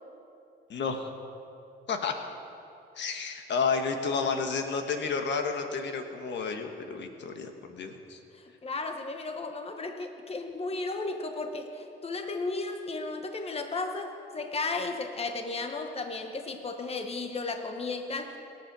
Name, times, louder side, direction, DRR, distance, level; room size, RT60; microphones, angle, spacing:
voice 1, 0.7-1.1 1.9-2.1 3.0-8.2, left 5 dB, 65° left, 5 dB, 1.4 m, -31 dB
voice 2, 8.3-18.4, left 3 dB, 30° left, 6 dB, 1.2 m, -34 dB
22.5 x 7.8 x 6.1 m, 2.7 s
cardioid pair, 90°, 20 cm